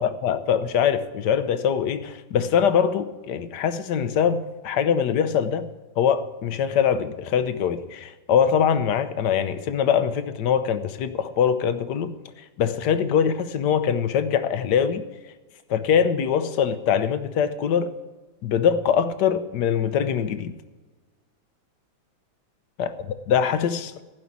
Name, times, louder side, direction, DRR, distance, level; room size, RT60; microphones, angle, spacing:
voice 1, 0.0-5.7 6.0-12.1 12.6-15.0 15.7-17.9 18.4-20.5 22.8-22.9 23.3-23.9, left 8 dB, 65° left, 11 dB, 1.3 m, -23 dB
15.0 x 5.5 x 8.4 m, 1.3 s
omnidirectional pair, 2.1 m